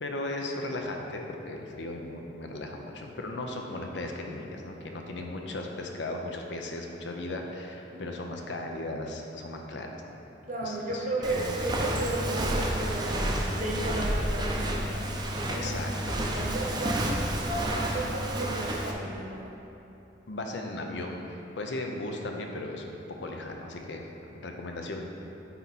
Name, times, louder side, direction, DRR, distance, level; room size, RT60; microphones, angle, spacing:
voice 1, 0.0-10.0 10.6-11.0 11.3-11.4 15.5-16.2 20.3-24.0 24.3-25.0, left 2 dB, 70° left, 2 dB, 0.6 m, -36 dB
voice 2, 7.9-8.2 10.5-15.1 15.5-15.8 16.1-19.5, right 1 dB, 45° right, -3 dB, 1.0 m, -34 dB
Walk footsteps, 11.2-18.9, right 1 dB, 25° right, 0.6 m, -30 dB
8.0 x 4.2 x 4.1 m, 2.9 s
head